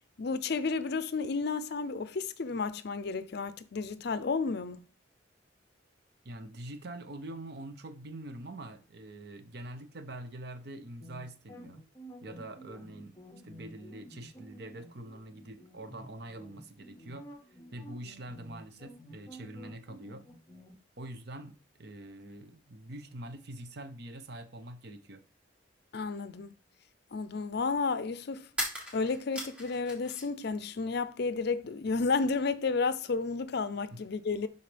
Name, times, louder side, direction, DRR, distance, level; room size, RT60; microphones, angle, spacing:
voice 1, 0.2-4.8 25.9-26.5 27.1-28.5 28.9-34.5, left 4 dB, 60° left, 0.5 m, -32 dB
voice 2, 6.2-11.8 12.2-13.2 13.4-17.3 17.7-20.2 21.0-25.2 33.9-34.0, right 1 dB, 60° right, 0.7 m, -44 dB
sound 1, 11.0-20.7, equal, 15° left, 1.0 m, -51 dB
sound 2, 28.5-30.4 30.7-31.6, left 1 dB, 5° right, 1.4 m, -39 dB
11.0 x 4.0 x 3.4 m
head